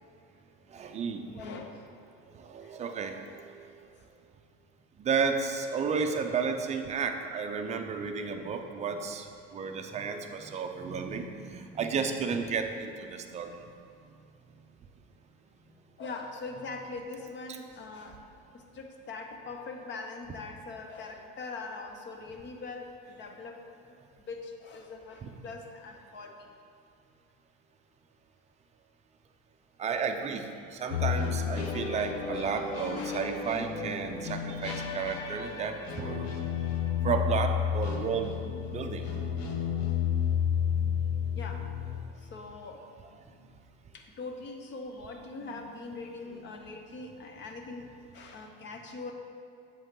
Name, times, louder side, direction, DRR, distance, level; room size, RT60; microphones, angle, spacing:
voice 1, 0.7-1.3 2.3-3.9 5.0-13.6 25.2-25.3 29.8-36.3 37.0-38.3 38.7-39.1 45.4-45.6 46.3-46.4, right 5 dB, 25° right, 5 dB, 0.5 m, -33 dB
voice 2, 1.3-1.8 2.6-2.8 16.0-18.2 18.5-23.6 24.3-26.5 32.9-33.3 41.3-41.7 42.2-42.8 43.9-49.1, left 3 dB, 40° left, 4 dB, 0.9 m, -42 dB
sound 1, 30.9-42.0, left 7 dB, 65° left, 1.1 m, -31 dB
8.3 x 7.7 x 3.8 m, 2.4 s
cardioid pair, 150°, 29 cm